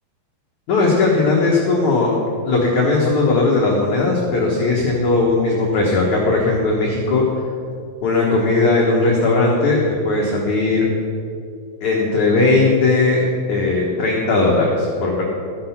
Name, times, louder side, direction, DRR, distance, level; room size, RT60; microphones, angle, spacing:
voice 1, 0.7-2.2 2.4-7.2 8.0-9.8 10.0-10.9 11.8-15.2, left 3 dB, 90° left, -3 dB, 1.6 m, -17 dB
14.0 x 7.5 x 5.8 m, 2.4 s
omnidirectional pair, 5.5 m